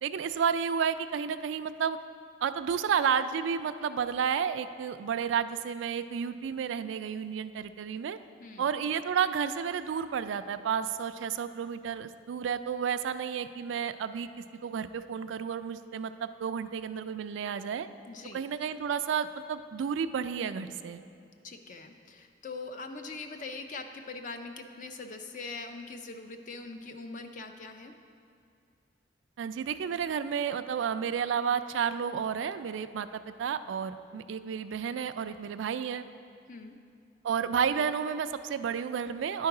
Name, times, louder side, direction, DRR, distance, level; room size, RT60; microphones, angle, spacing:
voice 1, 0.0-2.0 2.4-8.2 8.6-14.3 14.6-17.9 18.3-21.0 29.4-36.0 37.2-39.5, right 7 dB, 85° right, 11 dB, 0.3 m, -31 dB
voice 2, 18.1-18.4 21.4-27.9 36.5-36.8, left 3 dB, 45° left, 6 dB, 0.5 m, -42 dB
10.5 x 4.6 x 4.8 m, 2.4 s
head